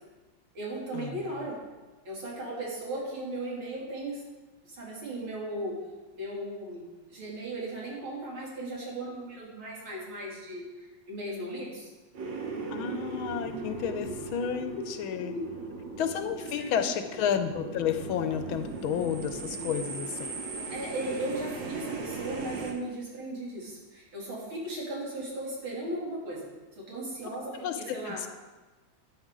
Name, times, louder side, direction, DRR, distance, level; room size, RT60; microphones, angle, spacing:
voice 1, 0.6-1.6 2.1-4.3 4.6-5.8 6.1-11.9 15.1-15.5 16.4-16.9 20.7-26.5 26.8-28.3, right 1 dB, 85° right, -4 dB, 3.6 m, -37 dB
sound 1, 12.1-22.7, right 3 dB, 65° right, 2.0 m, -38 dB
voice 2, 12.7-15.3 15.9-20.4 27.6-28.3, left 8 dB, 85° left, 9 dB, 1.6 m, -31 dB
12.0 x 9.2 x 3.7 m, 1.2 s
omnidirectional pair, 2.2 m